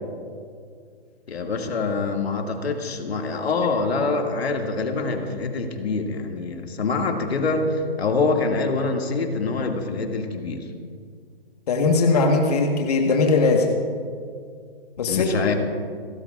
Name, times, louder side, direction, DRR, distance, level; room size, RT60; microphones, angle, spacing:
voice 1, 1.3-10.7 15.0-15.5, left 3 dB, 85° left, 3 dB, 2.1 m, -25 dB
voice 2, 11.7-13.7 15.0-15.2, left 3 dB, 40° left, 2 dB, 1.3 m, -19 dB
29.0 x 13.0 x 2.4 m, 2.1 s
hypercardioid pair, 175°, 31 cm